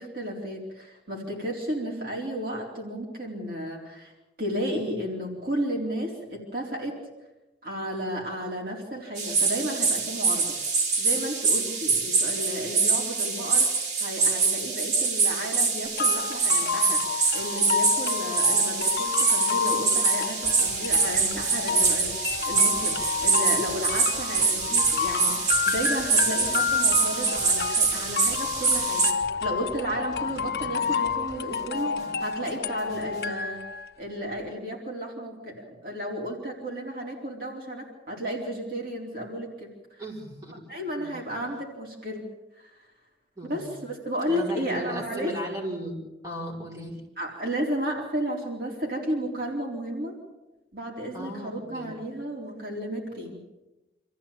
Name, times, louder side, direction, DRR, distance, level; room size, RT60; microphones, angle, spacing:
voice 1, 0.0-4.1 4.4-7.0 7.6-10.6 11.0-13.7 14.0-17.1 17.3-29.0 29.4-33.6 34.0-40.0 40.7-42.3 42.6-42.8 43.4-45.3 47.2-50.2 50.7-53.4, equal, 55° right, -1 dB, 4.2 m, -33 dB
sound 1, 9.2-29.1, right 4 dB, 70° right, 4.5 m, -25 dB
sound 2, 16.0-33.9, left 6 dB, 65° left, 0.9 m, -30 dB
sound 3, 20.4-33.4, equal, 35° right, 5.9 m, -46 dB
voice 2, 30.4-30.8 40.0-40.6 41.0-41.2 43.4-43.8 44.3-47.0 51.1-51.9, equal, 20° right, -2 dB, 5.4 m, -37 dB
26.5 x 15.0 x 8.8 m, 1.1 s
head